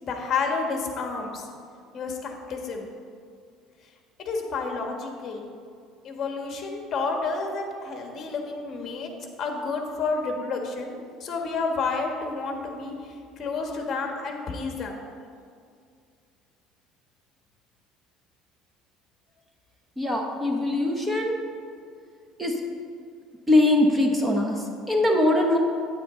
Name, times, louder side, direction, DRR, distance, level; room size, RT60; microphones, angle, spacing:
voice 1, 0.0-1.5 1.9-2.9 4.2-5.5 6.0-9.1 9.4-12.9 13.4-15.0, left 4 dB, 35° left, 2 dB, 1.5 m, -30 dB
voice 2, 20.0-21.4 22.4-22.6 23.5-25.6, left 1 dB, 10° right, 1 dB, 1.1 m, -22 dB
9.3 x 8.9 x 3.9 m, 2.3 s
cardioid pair, 135°, 0 cm